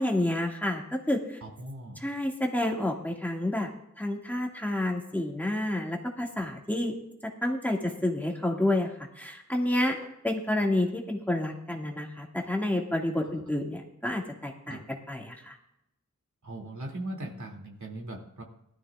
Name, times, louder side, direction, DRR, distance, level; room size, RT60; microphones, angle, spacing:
voice 1, 0.0-1.4 2.0-3.7 4.0-7.0 7.4-10.0 10.2-14.8 15.1-15.6, left 1 dB, 5° left, -1 dB, 2.2 m, -29 dB
voice 2, 1.4-2.1 10.0-10.1 14.7-14.8 16.4-18.4, right 1 dB, 75° right, -1 dB, 2.8 m, -39 dB
19.5 x 13.0 x 2.5 m, 0.81 s
wide cardioid pair, 70°, 29 cm